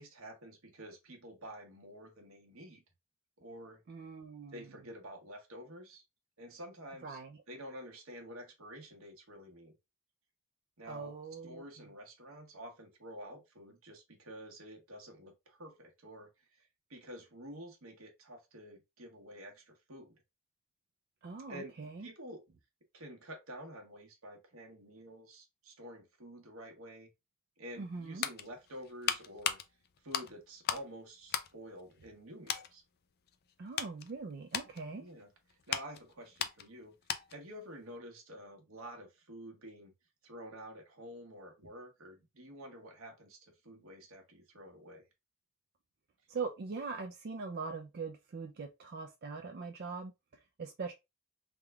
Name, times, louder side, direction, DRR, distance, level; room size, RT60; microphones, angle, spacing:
voice 1, 0.0-2.8 3.4-3.8 4.5-6.0 6.4-7.2 7.5-9.7 10.8-11.1 11.4-16.3 16.6-20.2 21.5-22.4 22.9-27.1 27.6-29.6 30.0-32.8 35.0-35.3 35.7-36.9 37.3-39.9 40.2-45.1, equal, 85° right, 1.2 m, -49 dB
voice 2, 3.9-4.7 7.0-7.4 10.8-11.9 21.2-22.1 27.8-28.3 33.6-35.0 46.3-50.9, right 4 dB, 50° right, 0.4 m, -42 dB
sound 1, 27.8-30.9 31.2-32.2 32.5-32.7 33.3-37.5 37.8-38.0, left 9 dB, 50° left, 0.4 m, -38 dB
3.6 x 2.3 x 3.3 m
head